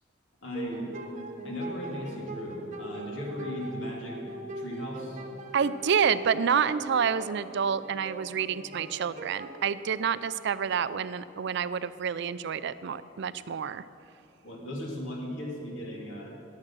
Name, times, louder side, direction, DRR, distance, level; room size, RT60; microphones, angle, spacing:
voice 1, 0.4-0.9 1.4-4.2 4.5-5.2 14.4-16.3, left 1 dB, 75° left, -2 dB, 3.1 m, -37 dB
sound 1, 0.5-11.0, right 1 dB, 40° right, 1.1 m, -41 dB
voice 2, 5.5-13.8, right 7 dB, 60° right, 15 dB, 0.4 m, -28 dB
20.0 x 7.6 x 6.1 m, 3.0 s
head